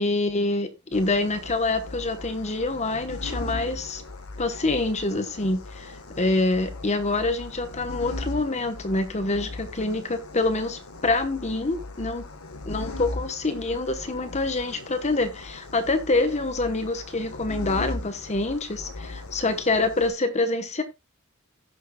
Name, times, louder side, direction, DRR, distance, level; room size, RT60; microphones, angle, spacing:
voice 1, 0.0-4.0 4.4-12.2 12.7-20.8, left 2 dB, 30° left, 1.0 m, -26 dB
sound 1, 0.9-20.1, left 2 dB, 85° left, 1.3 m, -38 dB
16.0 x 6.5 x 2.3 m
head